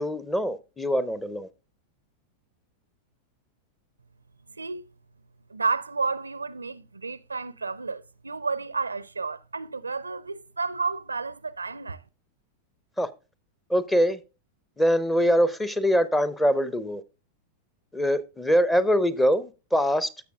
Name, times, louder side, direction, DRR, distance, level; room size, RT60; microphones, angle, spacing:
voice 1, 0.0-1.5 13.0-13.1 13.7-14.2 14.8-17.0 17.9-20.1, equal, 10° left, 0.7 m, -23 dB
voice 2, 5.5-12.0, right 4 dB, 80° right, 0.4 m, -31 dB
15.0 x 6.4 x 2.3 m
figure-of-eight pair, 90°, 0 cm